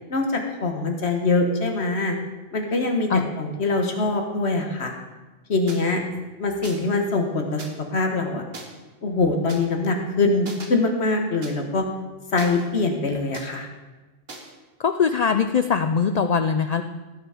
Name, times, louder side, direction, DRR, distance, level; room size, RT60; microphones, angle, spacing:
voice 1, 0.1-2.2 2.5-3.1 3.4-4.9 5.5-6.0 6.4-7.6 7.9-8.4 9.0-11.9 12.3-13.7, left 3 dB, 60° left, 4 dB, 1.5 m, -23 dB
sound 1, 5.7-5.8 6.6-6.9 7.6-7.7 8.5-8.6 9.5-9.6 10.5-10.7 11.4-11.5 12.4-12.9 13.3-13.5 14.3-14.5, right 3 dB, 50° right, 1.7 m, -39 dB
voice 2, 14.8-16.8, left 6 dB, 80° left, 8 dB, 0.3 m, -21 dB
17.0 x 6.0 x 5.0 m, 1.2 s
omnidirectional pair, 1.3 m